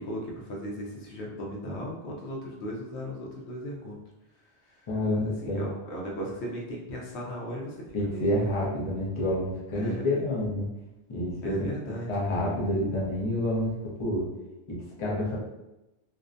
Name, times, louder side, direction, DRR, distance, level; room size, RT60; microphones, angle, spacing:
voice 1, 0.0-4.0 5.1-8.6 9.7-10.2 11.4-12.1, equal, 75° left, -2 dB, 0.9 m, -36 dB
voice 2, 4.9-5.7 7.9-10.7 11.1-11.5 11.8-14.3 14.7-15.4, left 1 dB, 35° left, -5 dB, 0.6 m, -28 dB
2.5 x 2.1 x 2.5 m, 0.96 s
omnidirectional pair, 1.2 m